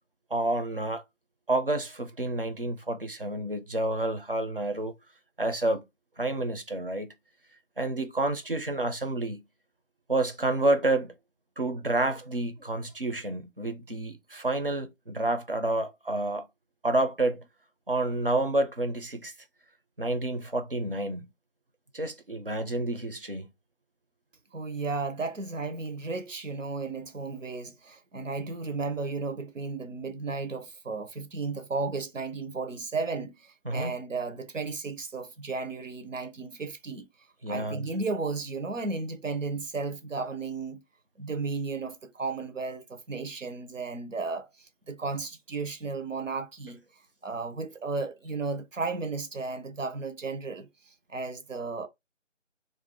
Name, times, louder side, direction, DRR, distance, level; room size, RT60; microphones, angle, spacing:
voice 1, 0.3-1.0 1.5-4.9 5.4-5.8 6.2-7.1 7.8-9.4 10.1-11.1 11.6-16.5 16.8-17.4 17.9-19.3 20.0-21.3 21.9-23.5 33.7-33.9 37.4-37.9, right 2 dB, 45° right, 0.5 m, -29 dB
voice 2, 24.5-37.1 37.5-40.8 41.2-46.8 47.2-51.9, right 4 dB, 80° right, 0.8 m, -34 dB
2.5 x 2.3 x 3.4 m
figure-of-eight pair, 165°, 38 cm